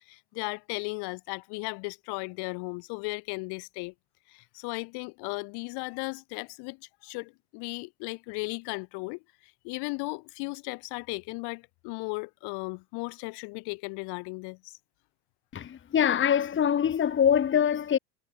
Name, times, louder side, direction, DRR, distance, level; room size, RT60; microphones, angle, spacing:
voice 1, 0.0-3.9 4.3-9.2 9.6-14.8, left 30 dB, 50° left, 4.4 m, -36 dB
voice 2, 15.5-18.0, left 8 dB, 25° left, 1.9 m, -24 dB
hypercardioid pair, 85°, 48 cm